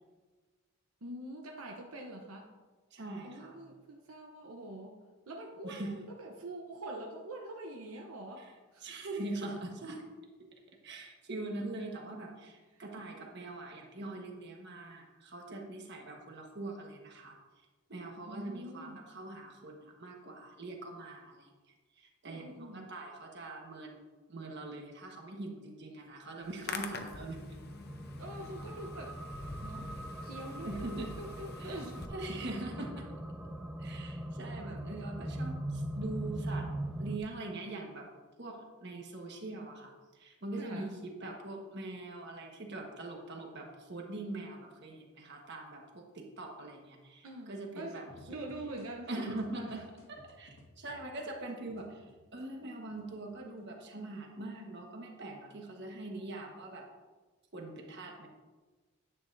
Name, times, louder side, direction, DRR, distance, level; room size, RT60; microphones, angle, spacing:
voice 1, 1.0-2.5 3.2-5.0 5.3-9.0 12.7-12.8 18.3-19.1 22.2-22.9 28.2-29.2 29.6-29.9 30.2-32.0 40.6-40.9 47.2-49.2 49.5-49.8, right 1 dB, 80° right, 1 dB, 0.8 m, -45 dB
voice 2, 2.9-3.6 5.6-5.9 8.4-8.5 8.8-10.1 10.8-17.4 17.9-21.5 22.0-24.0 24.3-27.6 30.6-31.1 31.6-31.8 32.1-33.1 33.8-36.7 37.0-38.1 38.4-48.0 49.1-49.8 50.1-56.8 57.5-58.3, right 2 dB, 50° right, 1 dB, 1.4 m, -42 dB
Hands, 26.4-32.1, left 4 dB, 45° left, 0.7 m, -46 dB
sound 1, 27.2-37.2, right 1 dB, 5° right, 0.4 m, -41 dB
sound 2, 48.1-52.5 52.9-53.6, left 1 dB, 65° left, 1.6 m, -57 dB
10.0 x 8.6 x 2.7 m, 1.3 s
head